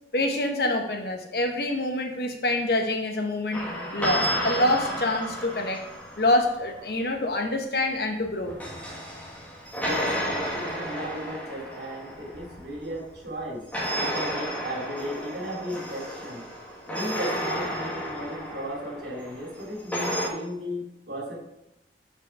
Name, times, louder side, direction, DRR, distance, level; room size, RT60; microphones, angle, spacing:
voice 1, 0.1-3.7 3.9-5.8 6.2-8.6, left 1 dB, 60° left, 4 dB, 1.0 m, -26 dB
sound 1, 3.5-6.7 8.2-13.2 13.7-20.3, equal, 10° left, 1.3 m, -32 dB
voice 2, 9.8-13.6 14.0-16.4 16.9-21.4, equal, 70° right, -2 dB, 2.5 m, -35 dB
7.7 x 4.7 x 5.6 m, 0.88 s
head